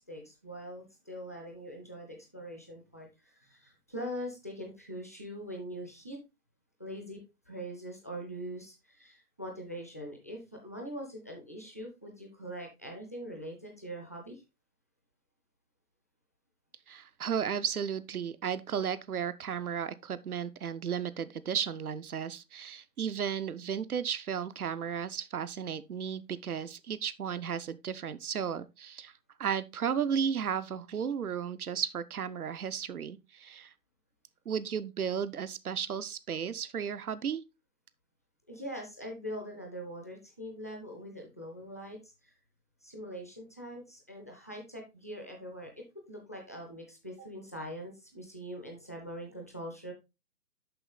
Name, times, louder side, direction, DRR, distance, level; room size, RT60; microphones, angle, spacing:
voice 1, 0.0-6.2 6.8-7.2 7.5-14.4 38.5-42.3 42.8-49.9, equal, 10° left, 0.5 m, -43 dB
voice 2, 16.9-29.1 29.4-33.7 34.5-37.4, right 7 dB, 75° right, 0.8 m, -34 dB
6.9 x 5.7 x 3.7 m
figure-of-eight pair, 140°, 45 cm